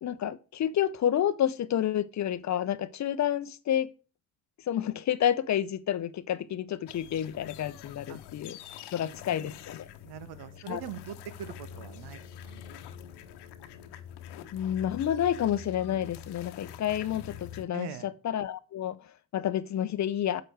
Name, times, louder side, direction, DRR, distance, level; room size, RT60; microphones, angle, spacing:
voice 1, 0.0-3.9 4.7-8.6 8.9-9.9 10.7-10.8 14.5-20.4, left 10 dB, 40° left, 0.7 m, -29 dB
sound 1, 6.9-17.6, left 9 dB, 65° left, 1.1 m, -45 dB
voice 2, 10.0-12.6 17.7-18.1, right 9 dB, 65° right, 1.1 m, -42 dB
7.8 x 7.7 x 4.7 m
hypercardioid pair, 55°, 43 cm